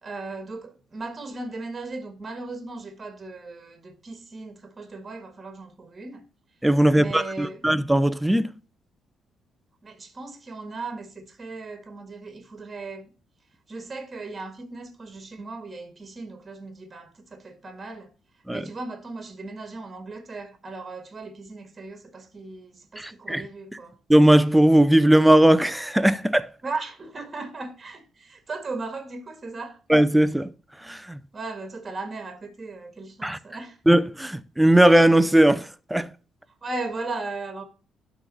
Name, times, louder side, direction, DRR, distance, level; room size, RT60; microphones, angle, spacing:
voice 1, 0.0-6.3 6.9-7.6 9.8-13.1 13.7-18.1 18.5-24.0 26.6-29.8 31.3-33.8 36.6-37.6, right 3 dB, 30° right, 1.8 m, -37 dB
voice 2, 6.6-8.5 18.5-18.6 23.0-23.4 24.1-26.5 29.9-30.5 30.9-31.2 33.2-33.4 33.9-35.6 35.9-36.1, right 1 dB, 5° right, 0.6 m, -18 dB
12.0 x 4.1 x 4.0 m
cardioid pair, 90°, 0 cm